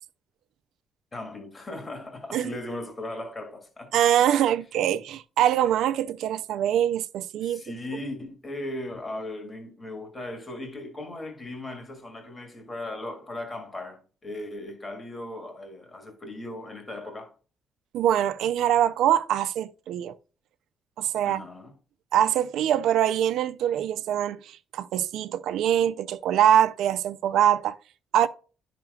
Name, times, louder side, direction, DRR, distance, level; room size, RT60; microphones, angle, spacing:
voice 1, 1.1-4.4 7.4-17.3 21.2-21.7, left 1 dB, 30° left, 1.8 m, -38 dB
voice 2, 3.9-7.6 17.9-20.2 21.0-21.5 22.1-27.8 28.1-28.3, right 10 dB, 80° right, 0.5 m, -23 dB
10.5 x 5.9 x 2.4 m
cardioid pair, 90°, 0 cm